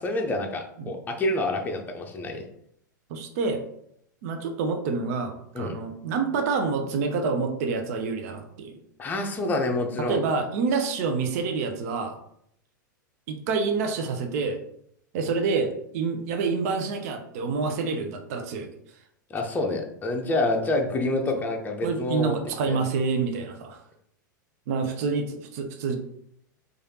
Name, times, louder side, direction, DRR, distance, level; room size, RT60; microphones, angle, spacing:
voice 1, 0.0-2.4 5.5-5.7 9.0-10.2 19.3-22.4 22.6-22.8, left 2 dB, 15° left, 2 dB, 0.7 m, -27 dB
voice 2, 3.1-3.6 4.2-8.7 10.1-12.2 13.3-14.6 15.1-18.7 21.8-23.8 24.7-26.0, right 4 dB, 50° right, 5 dB, 0.6 m, -27 dB
4.8 x 2.6 x 2.8 m, 0.71 s
figure-of-eight pair, 95°, 10 cm